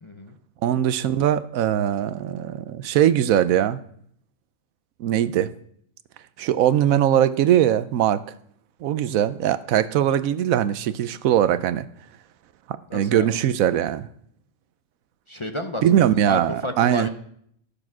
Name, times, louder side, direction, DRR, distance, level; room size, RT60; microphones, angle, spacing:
voice 1, 0.0-0.4 12.9-13.3 15.3-17.1, left 1 dB, 30° left, 0.6 m, -31 dB
voice 2, 0.6-3.8 5.0-5.5 6.4-8.2 8.8-11.9 12.7-14.1 15.8-17.1, right 10 dB, 85° right, 1.1 m, -21 dB
13.0 x 6.7 x 6.0 m
omnidirectional pair, 1.4 m